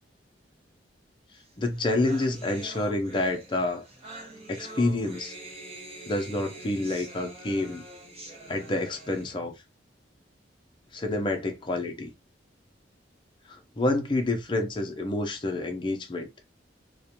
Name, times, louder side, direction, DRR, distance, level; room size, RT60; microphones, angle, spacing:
sound 1, 1.5-1.6 1.7-9.3, right 1 dB, 35° right, 0.6 m, -45 dB
voice 1, 1.6-3.8 4.5-5.3 6.1-7.8 8.5-9.5 10.9-12.1 13.5-16.3, left 2 dB, 25° left, 0.5 m, -28 dB
2.4 x 2.1 x 2.8 m
head